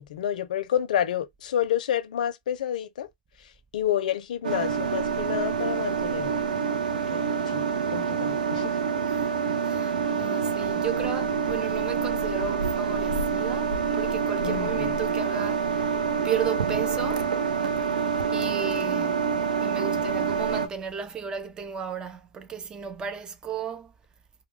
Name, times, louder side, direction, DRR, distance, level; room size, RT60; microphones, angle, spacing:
voice 1, 0.0-3.1 3.4-6.4 7.1-8.8 14.4-14.9, left 10 dB, 70° left, 0.5 m, -29 dB
sound 1, 4.4-20.7, right 6 dB, 85° right, 0.5 m, -27 dB
voice 2, 9.6-15.7 16.2-17.4 18.3-19.3 19.6-23.9, right 7 dB, 20° right, 0.5 m, -34 dB
2.2 x 2.2 x 3.2 m
hypercardioid pair, 130°, 4 cm